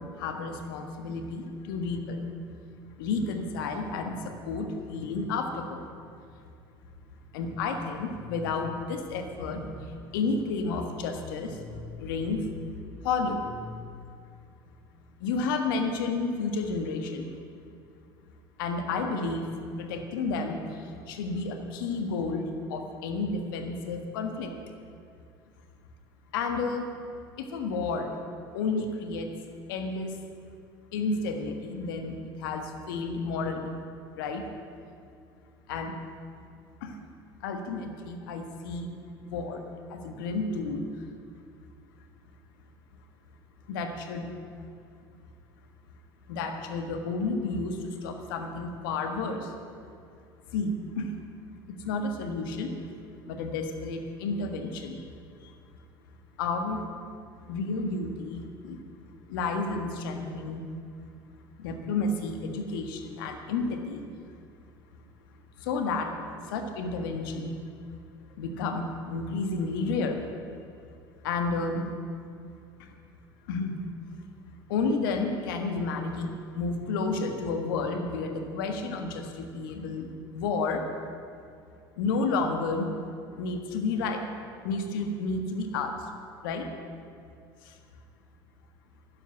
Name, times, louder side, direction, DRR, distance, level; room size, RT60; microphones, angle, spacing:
voice 1, 0.0-2.2 3.0-5.8 7.3-12.5 13.0-13.8 15.2-17.3 18.6-19.5 19.8-24.6 26.3-26.9 27.4-28.2 28.5-29.3 29.7-30.2 30.9-33.7 34.1-34.5 35.7-36.0 36.8-37.0 37.4-41.1 43.7-44.4 46.3-49.5 50.5-51.2 51.7-52.9 53.3-55.1 55.4-55.5 56.4-56.8 57.5-58.8 59.3-60.7 61.6-64.1 65.6-66.2 66.5-67.6 68.4-70.2 71.2-71.9 72.8-72.9 73.5-73.8 74.7-80.9 82.0-82.9 83.4-84.2 84.6-86.1 86.4-86.7 87.6-87.8, left 3 dB, 80° left, 5 dB, 1.6 m, -31 dB
11.5 x 8.3 x 10.0 m, 2.4 s
hypercardioid pair, 70°, 11 cm